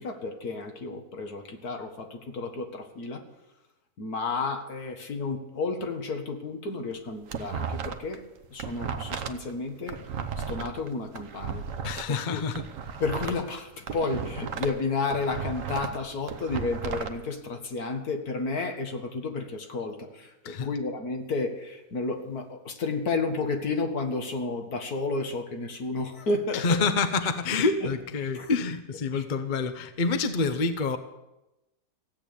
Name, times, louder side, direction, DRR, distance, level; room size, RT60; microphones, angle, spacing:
voice 1, 0.0-3.2 4.0-8.2 8.5-10.0 10.4-11.6 12.1-12.4 13.0-26.9 27.8-27.9 28.2-28.5 29.1-29.2, left 3 dB, 70° left, 5 dB, 2.1 m, -32 dB
sound 1, 6.9-8.2 8.4-12.0 12.4-14.8 15.1-17.1, right 6 dB, 55° right, 1.2 m, -34 dB
voice 2, 11.8-12.7 20.4-20.7 26.5-31.0, left 4 dB, 40° left, 9 dB, 0.8 m, -27 dB
16.0 x 8.7 x 8.7 m, 0.97 s
omnidirectional pair, 1.7 m